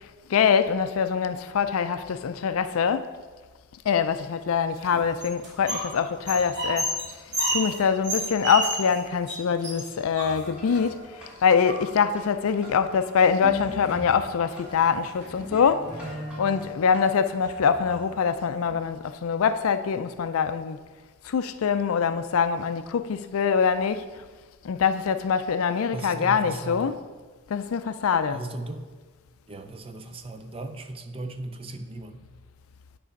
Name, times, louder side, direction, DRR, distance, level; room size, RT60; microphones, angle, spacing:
voice 1, 0.3-3.1 3.9-6.9 7.5-15.8 16.4-20.8 21.2-24.0 24.6-27.0 27.5-28.4, left 6 dB, 70° left, 11 dB, 0.4 m, -24 dB
sound 1, 4.8-5.9 6.2-9.0 9.3-9.4 9.6-10.8 11.4-12.1 13.2-13.3 13.6-14.1 14.6-14.8 15.2-15.3 15.8-16.6, right 1 dB, 55° right, 2.2 m, -31 dB
sound 2, 10.2-18.8, left 1 dB, 5° right, 1.4 m, -43 dB
voice 2, 25.9-27.0 28.3-28.8 29.5-32.3, right 2 dB, 25° right, 7 dB, 0.5 m, -37 dB
10.0 x 3.4 x 5.2 m, 1.4 s
head